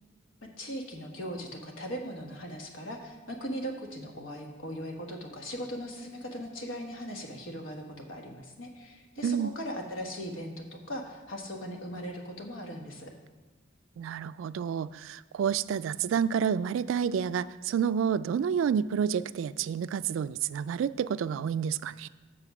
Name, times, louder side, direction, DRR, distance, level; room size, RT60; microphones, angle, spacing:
voice 1, 0.4-13.1, equal, 85° left, 2 dB, 1.4 m, -39 dB
voice 2, 14.0-22.1, right 7 dB, 90° right, 17 dB, 0.3 m, -29 dB
7.9 x 6.4 x 5.9 m, 1.3 s
head